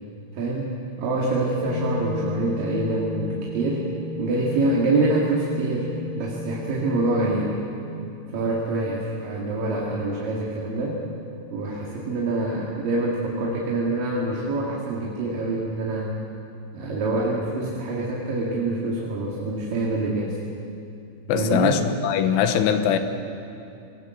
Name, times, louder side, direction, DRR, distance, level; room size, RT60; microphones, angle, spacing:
voice 1, 0.3-3.9 4.2-7.6 8.3-11.0 11.5-16.1 16.7-20.4 21.3-21.8, right 2 dB, 55° right, -3 dB, 3.4 m, -25 dB
sound 1, 1.5-7.5, left 2 dB, 65° left, 9.3 m, -33 dB
voice 2, 21.3-23.0, left 8 dB, 85° left, 7 dB, 3.7 m, -21 dB
27.5 x 19.0 x 7.9 m, 2.6 s
omnidirectional pair, 5.6 m